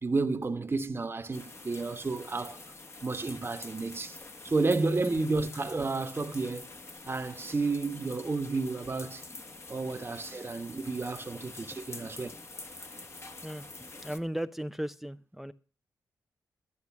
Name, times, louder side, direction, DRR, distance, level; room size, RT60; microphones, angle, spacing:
voice 1, 0.0-2.6 3.0-4.2 4.4-6.7 7.0-9.2 9.7-12.3, right 3 dB, 35° right, 1.3 m, -31 dB
sound 1, 1.3-14.2, left 3 dB, 40° left, 1.8 m, -46 dB
voice 2, 14.0-15.5, right 1 dB, 5° right, 0.6 m, -36 dB
12.0 x 10.5 x 5.9 m
cardioid pair, 55°, 7 cm